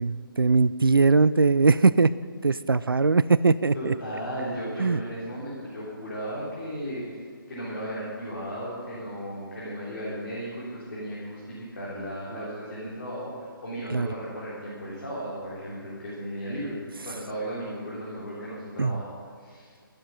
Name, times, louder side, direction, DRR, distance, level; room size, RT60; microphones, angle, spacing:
voice 1, 0.0-2.1 2.4-3.9 4.8-5.0 13.9-14.1 18.8-19.0, right 4 dB, 75° right, 17 dB, 0.4 m, -21 dB
voice 2, 3.7-7.1 7.5-16.8 17.0-19.1 19.4-19.7, equal, 40° left, -7 dB, 3.6 m, -35 dB
13.0 x 11.5 x 5.4 m, 2.1 s
figure-of-eight pair, 145°, 12 cm